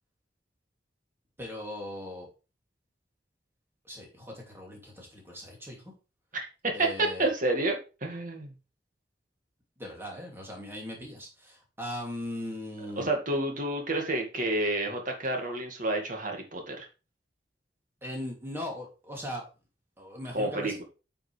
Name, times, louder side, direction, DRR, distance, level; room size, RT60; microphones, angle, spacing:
voice 1, 1.4-2.3 3.8-5.9 6.7-7.3 9.8-13.1 18.0-19.5 20.0-20.8, left 1 dB, 15° right, -1 dB, 2.9 m, -39 dB
voice 2, 6.3-8.5 13.0-16.9 20.3-20.8, right 2 dB, 50° right, 3 dB, 2.1 m, -29 dB
9.1 x 5.6 x 3.4 m, 0.32 s
head